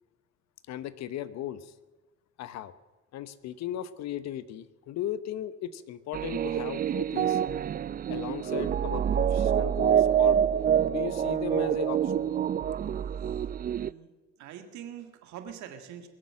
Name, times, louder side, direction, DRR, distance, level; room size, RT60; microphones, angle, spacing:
voice 1, 0.7-1.7 2.4-2.7 3.1-7.4 8.1-10.4 10.9-12.3, left 11 dB, 65° left, 15 dB, 1.0 m, -37 dB
sound 1, 6.1-13.9, right 9 dB, 30° right, 0.4 m, -26 dB
voice 2, 13.4-14.1 14.4-16.1, right 9 dB, 70° right, 6 dB, 1.8 m, -44 dB
22.0 x 7.6 x 7.6 m, 1.2 s
supercardioid pair, 70°, 30 cm